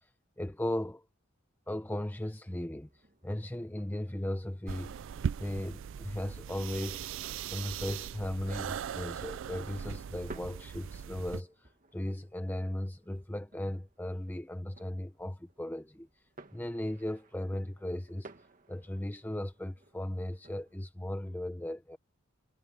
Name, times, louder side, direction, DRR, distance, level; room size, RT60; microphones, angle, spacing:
voice 1, 0.4-1.0 1.7-4.9 5.4-7.1 7.5-16.1 16.5-18.3 18.7-22.0, left 1 dB, 10° left, 0.7 m, -37 dB
sound 1, 2.8-20.8, right 2 dB, 40° right, 1.7 m, -58 dB
sound 2, 4.7-11.4, right 8 dB, 60° right, 0.3 m, -39 dB
head